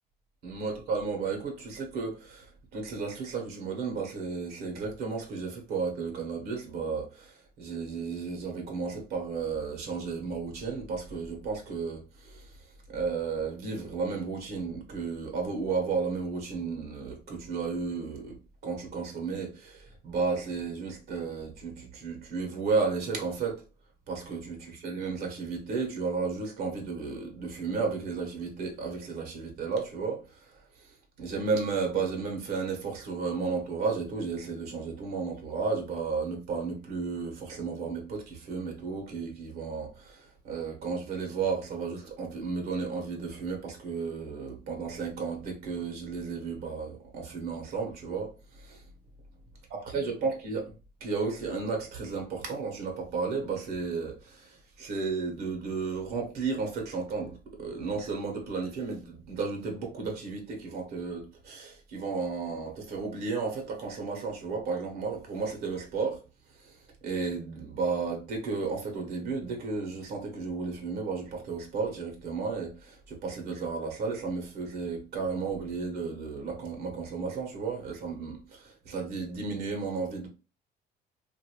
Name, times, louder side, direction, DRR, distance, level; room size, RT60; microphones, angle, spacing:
voice 1, 0.4-12.6 12.9-18.4 18.6-23.6 24.1-48.8 49.7-50.6 51.0-66.2 66.5-80.3, right 4 dB, 70° right, 1.0 m, -33 dB
2.6 x 2.5 x 2.9 m
cardioid pair, 110°, 17 cm